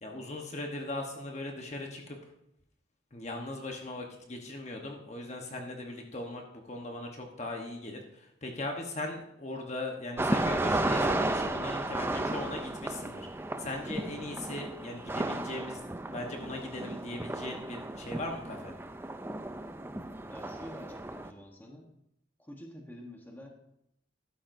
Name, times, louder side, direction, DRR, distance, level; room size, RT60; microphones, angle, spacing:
voice 1, 0.0-2.2 3.1-13.3 13.6-18.7, left 2 dB, 35° left, 2 dB, 1.1 m, -39 dB
sound 1, 10.2-21.3, right 2 dB, 10° right, 0.4 m, -34 dB
voice 2, 20.3-21.9 22.4-23.5, equal, 10° left, 0 dB, 1.1 m, -48 dB
13.5 x 12.0 x 2.7 m, 0.79 s
head